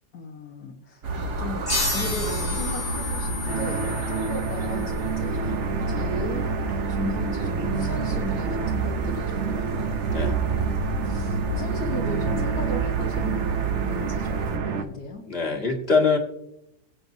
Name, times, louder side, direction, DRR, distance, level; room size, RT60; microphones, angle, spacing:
voice 1, 0.1-6.6 6.9-9.8 10.4-13.5 13.8-15.2, left 2 dB, 70° left, -1 dB, 1.8 m, -36 dB
sound 1, 1.0-14.6, right 3 dB, 75° right, 1.9 m, -29 dB
sound 2, 1.7-4.9, left 3 dB, 15° left, 1.4 m, -31 dB
sound 3, 3.5-14.9, right 6 dB, 55° right, 1.0 m, -29 dB
voice 2, 15.3-16.2, left 4 dB, 40° left, 2 dB, 1.9 m, -23 dB
22.0 x 7.9 x 2.7 m, 0.83 s
omnidirectional pair, 1.7 m